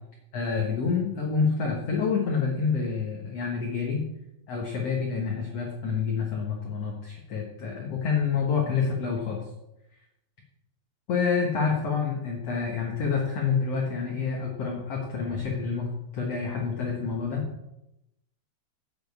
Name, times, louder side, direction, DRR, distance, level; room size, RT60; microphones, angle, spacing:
voice 1, 0.3-4.0 4.5-9.4 11.1-17.4, left 5 dB, 55° left, 0 dB, 1.9 m, -28 dB
7.8 x 7.0 x 8.0 m, 0.87 s
omnidirectional pair, 4.4 m